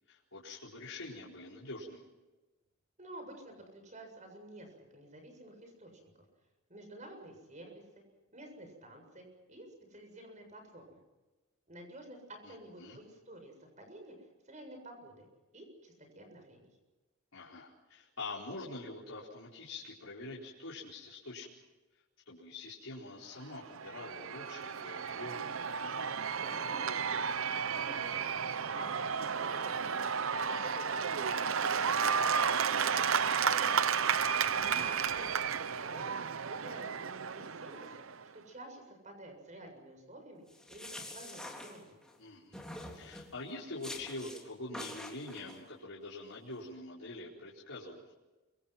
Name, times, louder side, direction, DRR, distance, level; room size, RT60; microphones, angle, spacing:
voice 1, 0.1-2.1 12.4-13.0 17.3-21.5 22.3-25.5 34.8-35.1 42.2-42.6 42.9-48.1, left 2 dB, 80° left, -6 dB, 4.6 m, -45 dB
voice 2, 3.0-6.2 6.7-7.8 8.3-11.0 11.7-14.2 14.5-15.3 15.5-16.7 26.4-28.2 28.6-32.0 32.4-33.0 33.4-34.3 34.7-36.1 36.5-41.9, right 1 dB, 35° right, 4 dB, 7.3 m, -50 dB
Cheering / Applause / Crowd, 23.5-38.2, right 6 dB, 75° right, 0.7 m, -32 dB
sound 1, 40.5-42.2 42.5-43.3 43.8-44.4 44.7-45.6, left 1 dB, 5° left, 3.7 m, -46 dB
28.5 x 25.0 x 6.0 m, 1.1 s
head